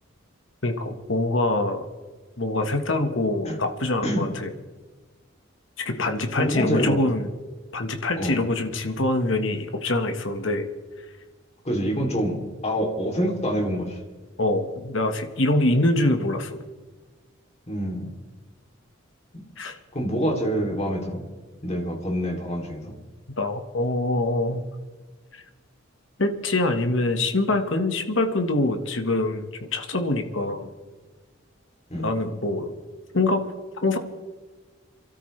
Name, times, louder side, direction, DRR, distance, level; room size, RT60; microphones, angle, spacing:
voice 1, 0.6-1.8 2.4-4.5 5.8-7.3 7.7-10.7 14.4-16.6 19.6-19.8 23.4-24.6 26.2-30.7 32.0-32.7 33.1-33.4 33.8-34.0, left 2 dB, 70° left, 6 dB, 1.5 m, -24 dB
voice 2, 6.4-7.0 8.2-8.4 11.6-12.4 12.6-14.0 17.7-18.1 19.9-21.2 21.6-22.9 31.9-32.1, equal, 35° left, 0 dB, 3.0 m, -26 dB
28.0 x 13.0 x 3.3 m, 1.4 s
head